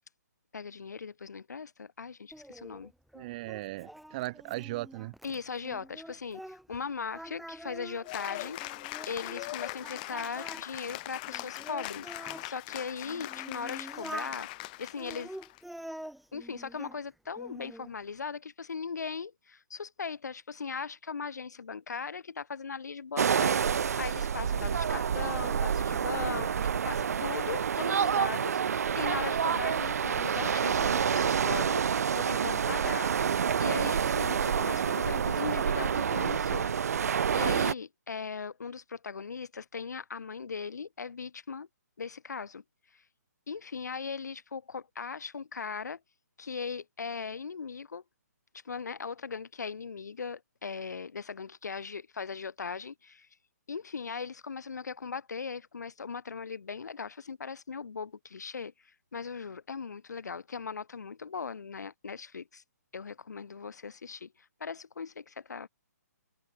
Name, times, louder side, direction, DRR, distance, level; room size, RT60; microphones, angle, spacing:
voice 1, 0.5-2.9 5.2-8.6 9.0-14.5 14.8-15.4 16.3-33.1 33.6-36.8 37.3-41.7 42.0-42.6 42.9-43.0 43.5-46.0 46.4-48.0 48.6-53.3 53.7-62.6 62.9-65.7, left 5 dB, 75° left, 5.8 m, -39 dB
Singing, 2.3-6.8 7.1-9.5 9.8-12.5 13.1-14.4 15.0-17.0 17.4-17.9, right 1 dB, ahead, 1.7 m, -46 dB
voice 2, 3.1-5.1, right 19 dB, 30° right, 2.2 m, -37 dB
Cheering / Applause, 8.0-15.6, left 22 dB, 30° left, 2.9 m, -41 dB
sound 1, 23.2-37.7, right 7 dB, 60° right, 2.7 m, -28 dB
hypercardioid pair, 155°, 9 cm